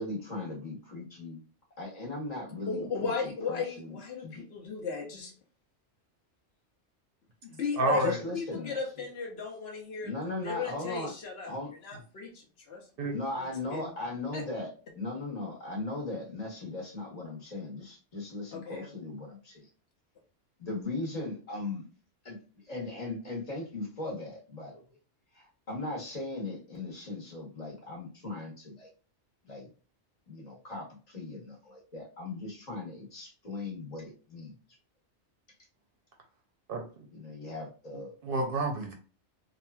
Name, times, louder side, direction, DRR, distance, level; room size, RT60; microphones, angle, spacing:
voice 1, 0.0-1.4 1.8-4.4 7.9-9.1 10.0-11.1 11.5-11.7 13.1-19.7 20.6-21.8 22.2-22.4 22.6-24.8 25.3-28.9 29.5-29.7 30.3-34.5 37.1-38.1, left 2 dB, 35° left, -2 dB, 1.0 m, -38 dB
voice 2, 2.7-5.3 7.4-10.1 10.4-11.6 11.8-12.9 13.7-13.9 14.3-14.5 18.5-18.9, left 5 dB, 65° left, 1 dB, 0.9 m, -35 dB
voice 3, 7.8-8.2 13.0-13.1 36.7-37.0 38.2-38.9, right 3 dB, 60° right, 3 dB, 0.7 m, -29 dB
2.8 x 2.4 x 2.2 m, 0.37 s
omnidirectional pair, 1.2 m